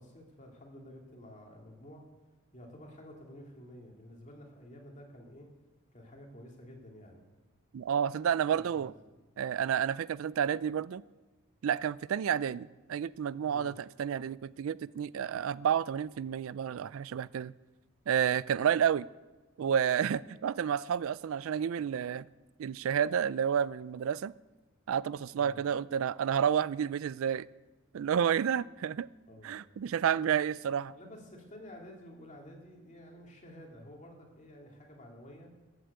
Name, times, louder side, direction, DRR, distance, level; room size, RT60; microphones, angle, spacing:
voice 1, 0.0-2.0 2.5-5.5 5.9-7.3 8.5-8.9 13.4-13.7 25.4-25.6 29.3-29.6 30.2-30.4 30.9-35.5, left 1 dB, 35° left, 1 dB, 2.6 m, -51 dB
voice 2, 7.7-8.9 9.4-11.0 11.6-17.5 18.1-19.1 19.6-22.3 22.6-24.3 24.9-27.5 27.9-29.1 29.4-30.9, right 8 dB, 65° right, 20 dB, 0.3 m, -30 dB
14.0 x 7.8 x 8.1 m, 1.2 s
head